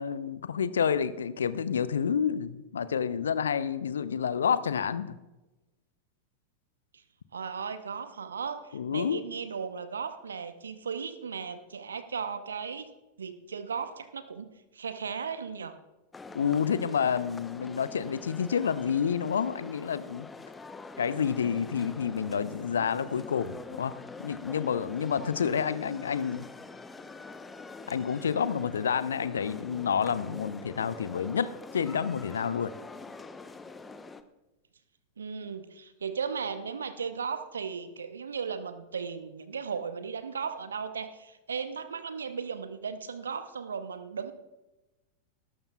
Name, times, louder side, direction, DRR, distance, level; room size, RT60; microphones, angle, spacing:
voice 1, 0.0-5.2 8.7-9.2 16.3-20.3 21.0-26.4 27.9-32.7, left 7 dB, 70° left, 15 dB, 0.6 m, -29 dB
voice 2, 7.3-12.9 13.2-15.8 35.2-44.3, right 6 dB, 70° right, 11 dB, 0.8 m, -36 dB
sound 1, 16.1-34.2, left 3 dB, 15° left, 0.8 m, -45 dB
19.5 x 12.0 x 2.4 m, 1.0 s
figure-of-eight pair, 90°, 0 cm